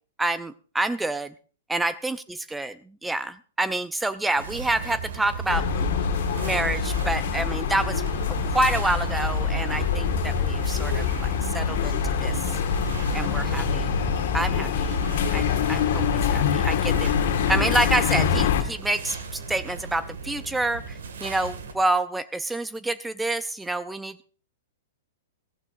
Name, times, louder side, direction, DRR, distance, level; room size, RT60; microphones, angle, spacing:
voice 1, 0.2-1.3 1.7-2.2 2.5-2.7 3.0-5.9 6.3-12.4 13.1-13.9 14.3-15.0 15.3-16.0 16.3-17.2 17.5-24.3, right 2 dB, 5° right, 14 dB, 0.6 m, -28 dB
sound 1, 4.4-21.7, right 5 dB, 65° right, 2.2 m, -36 dB
sound 2, 5.5-18.6, left 7 dB, 55° left, 1.7 m, -25 dB
18.0 x 14.0 x 2.7 m, 0.40 s
figure-of-eight pair, 105°, 0 cm